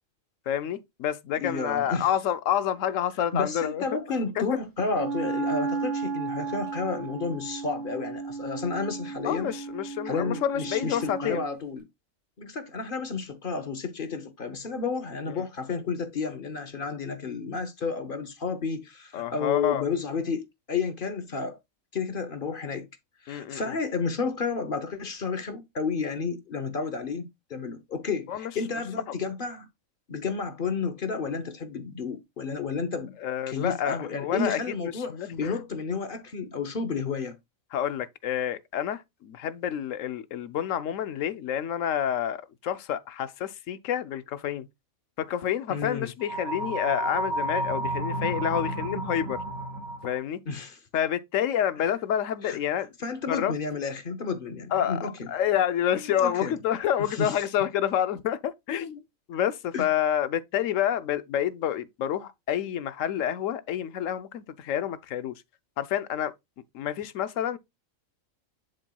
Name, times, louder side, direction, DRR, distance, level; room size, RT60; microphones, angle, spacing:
voice 1, 0.5-3.9 4.4-4.5 9.2-11.4 19.1-19.8 23.3-23.7 28.3-28.5 33.2-35.5 37.7-44.7 45.2-49.4 50.0-50.4 50.9-52.9 53.3-53.5 54.7-59.0 59.3-65.3 65.8-66.3 66.7-67.6, left 10 dB, 75° left, 1.0 m, -28 dB
voice 2, 1.4-2.1 3.3-9.5 10.0-11.9 12.4-21.6 21.9-22.9 23.2-29.7 30.1-33.2 33.5-37.4 45.7-46.1 50.5-50.8 52.4-52.6 53.0-55.3 56.0-56.5 57.1-57.3 59.7-59.9, left 4 dB, 45° left, 0.9 m, -31 dB
Wind instrument woodwind instrument, 4.9-11.6, right 4 dB, 65° right, 4.3 m, -34 dB
sound 1, 46.2-50.2, right 1 dB, 80° right, 2.3 m, -31 dB
10.5 x 4.4 x 2.3 m
omnidirectional pair, 1.4 m